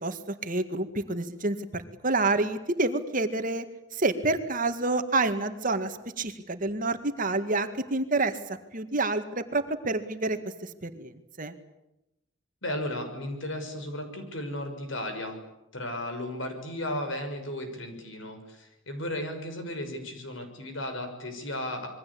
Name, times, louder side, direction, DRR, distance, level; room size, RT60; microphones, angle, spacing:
voice 1, 0.0-3.7 4.0-8.4 8.7-10.4 10.8-11.1 11.4-11.5, right 2 dB, 45° right, 9 dB, 1.9 m, -28 dB
voice 2, 12.6-15.4 15.7-21.9, left 1 dB, 70° left, 6 dB, 6.2 m, -35 dB
27.0 x 22.5 x 8.6 m, 0.86 s
head